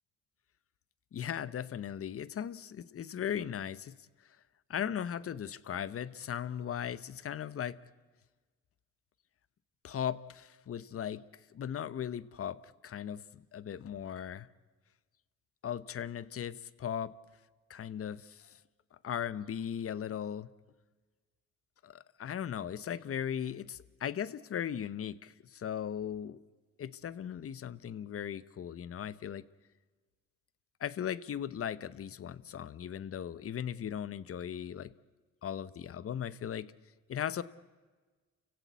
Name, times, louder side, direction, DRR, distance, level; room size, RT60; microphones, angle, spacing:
voice 1, 1.1-3.9 4.7-7.8 9.8-11.2 11.5-14.5 15.6-17.1 17.7-18.6 18.9-20.5 21.8-26.4 26.8-29.4 30.8-34.9 35.4-36.7 37.1-37.4, left 9 dB, 50° left, 17 dB, 0.9 m, -38 dB
29.5 x 16.0 x 8.3 m, 1.3 s
cardioid pair, 90°, 30 cm